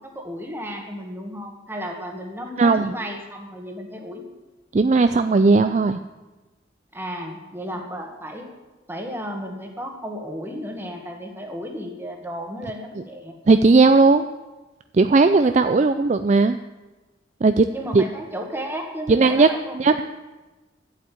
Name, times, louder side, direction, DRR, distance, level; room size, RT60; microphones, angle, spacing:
voice 1, 0.0-4.2 6.9-8.5 8.9-13.3 17.7-20.0, equal, 10° right, 2 dB, 1.8 m, -33 dB
voice 2, 2.6-2.9 4.7-6.0 13.5-14.3 14.9-16.6 17.4-17.7 17.9-18.0 19.1-19.5 19.8-20.0, right 3 dB, 35° right, 9 dB, 0.4 m, -16 dB
11.5 x 8.3 x 8.6 m, 1.2 s
head